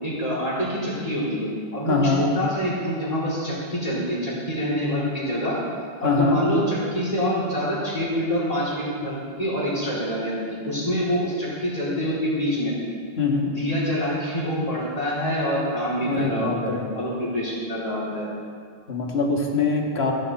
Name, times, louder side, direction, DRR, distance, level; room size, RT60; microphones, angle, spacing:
voice 1, 0.0-5.6 6.0-12.7 13.4-18.3, equal, 35° left, -7 dB, 4.4 m, -26 dB
voice 2, 1.9-2.2 6.0-6.4 13.2-13.5 16.0-16.9 18.9-20.1, left 4 dB, 80° left, 0 dB, 2.1 m, -23 dB
15.0 x 14.5 x 4.3 m, 2.2 s
omnidirectional pair, 1.0 m